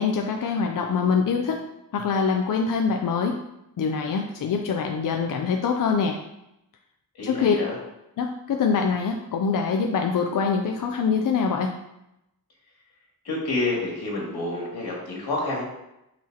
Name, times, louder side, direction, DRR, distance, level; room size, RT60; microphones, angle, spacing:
voice 1, 0.0-1.6 1.9-3.4 3.8-6.2 7.2-7.6 8.2-11.7, left 5 dB, 60° left, 3 dB, 0.6 m, -24 dB
voice 2, 7.2-7.8 13.2-15.6, left 2 dB, 85° left, -4 dB, 2.6 m, -28 dB
7.4 x 6.1 x 2.9 m, 0.86 s
wide cardioid pair, 160°, 37 cm